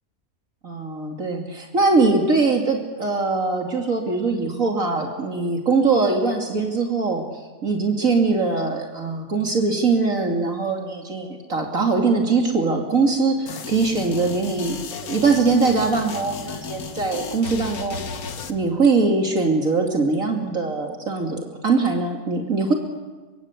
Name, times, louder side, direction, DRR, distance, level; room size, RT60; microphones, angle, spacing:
voice 1, 0.6-7.2 7.6-14.8 15.0-18.0 18.5-22.7, right 4 dB, 65° right, 2 dB, 2.9 m, -22 dB
sound 1, 13.5-18.5, left 5 dB, 80° left, 1.8 m, -34 dB
26.0 x 24.5 x 8.4 m, 1.3 s
omnidirectional pair, 1.5 m